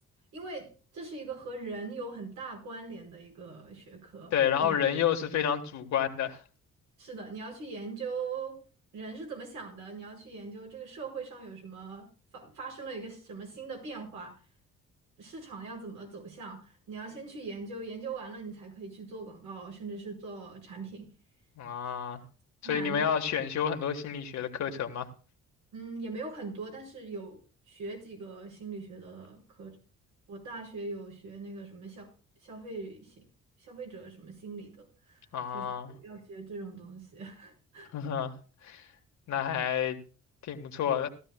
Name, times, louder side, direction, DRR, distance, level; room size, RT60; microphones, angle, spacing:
voice 1, 0.3-4.3 4.6-4.8 7.0-8.6 8.9-12.1 12.3-14.4 15.2-21.1 22.6-23.0 25.7-27.4 27.7-29.8 30.3-32.1 32.4-33.3 33.6-37.9, right 4 dB, 80° right, 5.2 m, -41 dB
voice 2, 4.3-6.4 21.6-22.2 22.7-25.1 35.3-35.9 37.9-38.3 38.6-38.9 39.3-40.0 40.4-41.1, left 8 dB, 65° left, 1.5 m, -30 dB
17.0 x 13.0 x 2.3 m
cardioid pair, 90°, 30 cm